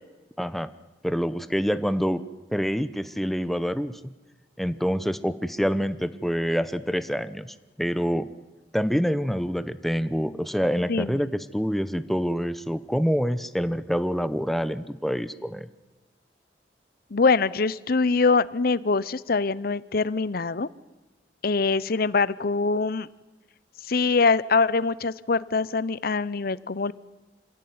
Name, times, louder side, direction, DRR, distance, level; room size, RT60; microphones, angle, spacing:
voice 1, 0.4-0.7 1.0-2.2 2.5-4.0 4.6-8.3 8.7-15.7, equal, ahead, 13 dB, 0.9 m, -26 dB
voice 2, 10.9-11.2 17.1-20.7 21.4-23.1 23.9-26.9, left 4 dB, 55° left, 18 dB, 0.7 m, -23 dB
26.5 x 16.5 x 9.5 m, 1.2 s
head